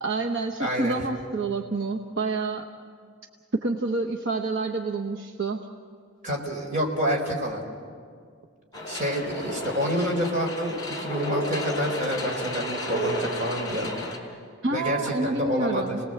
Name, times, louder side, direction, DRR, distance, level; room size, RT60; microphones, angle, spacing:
voice 1, 0.0-2.7 3.5-5.7 14.6-16.0, right 3 dB, 60° right, 2 dB, 1.1 m, -28 dB
voice 2, 0.6-1.0 6.2-7.6 8.9-13.9 14.7-16.0, equal, 40° right, 1 dB, 4.4 m, -28 dB
sound 1, 8.7-14.2, equal, 20° left, 3.9 m, -32 dB
30.0 x 19.5 x 7.8 m, 2.1 s
head